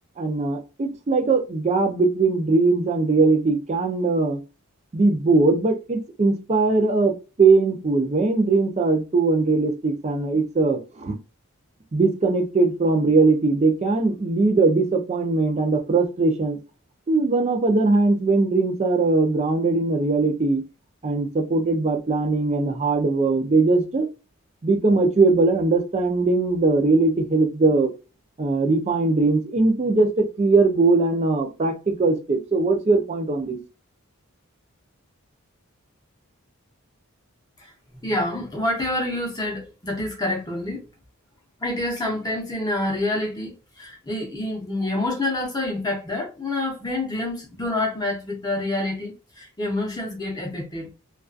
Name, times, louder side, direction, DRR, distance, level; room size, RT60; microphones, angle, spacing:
voice 1, 0.2-4.4 4.9-11.2 11.9-16.6 17.1-20.6 21.0-24.1 24.6-27.9 28.4-33.6, right 3 dB, 30° right, 0.4 m, -20 dB
voice 2, 38.0-40.9 41.6-50.9, left 1 dB, 15° left, 0.6 m, -27 dB
2.3 x 2.3 x 2.4 m
head